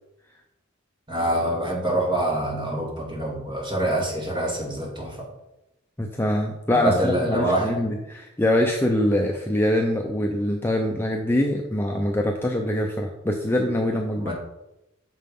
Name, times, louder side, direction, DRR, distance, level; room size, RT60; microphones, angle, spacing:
voice 1, 1.1-5.3 6.7-7.7 14.2-14.3, right 1 dB, 20° right, -2 dB, 2.2 m, -25 dB
voice 2, 6.0-14.3, left 1 dB, 10° left, 1 dB, 0.6 m, -24 dB
9.2 x 6.6 x 3.8 m, 0.91 s
head